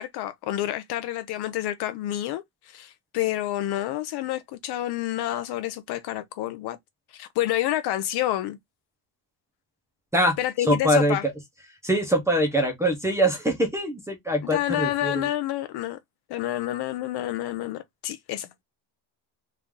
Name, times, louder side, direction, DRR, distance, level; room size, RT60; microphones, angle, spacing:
voice 1, 0.0-6.8 7.1-8.6 10.4-11.3 14.4-16.0 16.3-18.5, left 14 dB, 55° left, 0.5 m, -29 dB
voice 2, 10.7-11.2 11.8-15.3, equal, 5° right, 0.7 m, -23 dB
3.2 x 2.6 x 3.5 m
cardioid pair, 175°, 49 cm